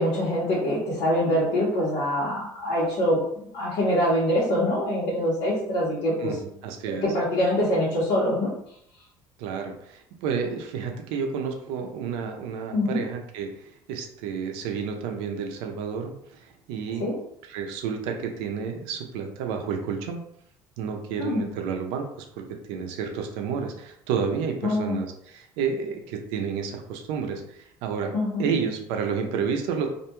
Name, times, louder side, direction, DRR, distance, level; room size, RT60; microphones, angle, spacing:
voice 1, 0.0-6.4 7.0-8.5 12.7-13.0 17.0-17.2 21.2-21.4 24.6-25.0 28.1-28.5, left 1 dB, 65° left, -8 dB, 1.0 m, -24 dB
voice 2, 6.2-7.1 9.4-17.1 17.5-20.2 20.8-29.9, right 6 dB, 90° right, 3 dB, 0.5 m, -31 dB
2.5 x 2.2 x 2.9 m, 0.71 s
cardioid pair, 170°, 9 cm